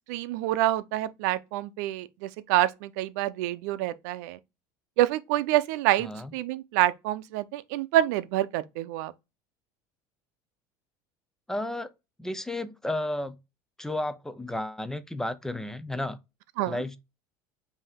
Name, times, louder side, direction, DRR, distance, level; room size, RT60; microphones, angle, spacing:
voice 1, 0.1-4.4 5.0-9.1 16.6-16.8, right 14 dB, 85° right, 0.5 m, -27 dB
voice 2, 6.0-6.3 11.5-11.9 12.2-13.4 13.8-16.2 16.7-17.0, left 1 dB, 5° left, 0.5 m, -32 dB
5.4 x 2.7 x 3.4 m
cardioid pair, 140°, 9 cm